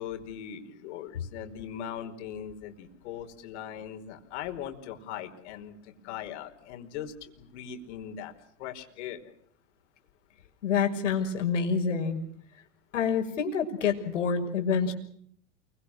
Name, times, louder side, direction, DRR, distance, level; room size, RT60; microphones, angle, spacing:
voice 1, 0.0-8.3 8.6-9.3, left 9 dB, 65° left, 5 dB, 5.0 m, -40 dB
voice 2, 10.6-12.3 12.9-14.9, left 6 dB, 80° left, 3 dB, 6.1 m, -27 dB
29.0 x 24.5 x 6.4 m, 0.64 s
hypercardioid pair, 95°, 37 cm